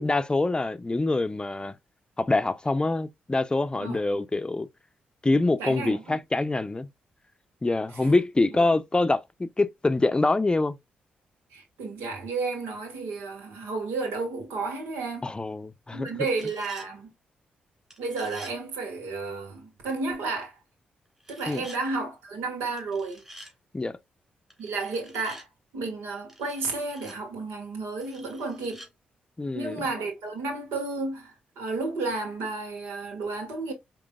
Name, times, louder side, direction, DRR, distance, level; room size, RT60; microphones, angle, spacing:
voice 1, 0.0-1.7 2.2-4.7 5.2-6.9 7.6-10.8 15.2-16.1 21.5-21.6 23.7-24.0 29.4-29.8, left 2 dB, 25° left, 0.5 m, -25 dB
voice 2, 5.6-6.2 8.0-8.1 8.5-8.6 11.5-15.3 15.9-17.1 18.0-20.5 21.3-23.2 24.6-25.5 25.7-28.8 29.5-33.7, right 3 dB, 85° right, 1.6 m, -32 dB
sound 1, 16.1-16.9 17.9-18.6 21.2-21.8 22.8-23.5 24.5-25.5 26.3-27.2 28.0-28.9, equal, 10° right, 2.6 m, -48 dB
5.0 x 3.0 x 2.3 m
supercardioid pair, 50°, 4 cm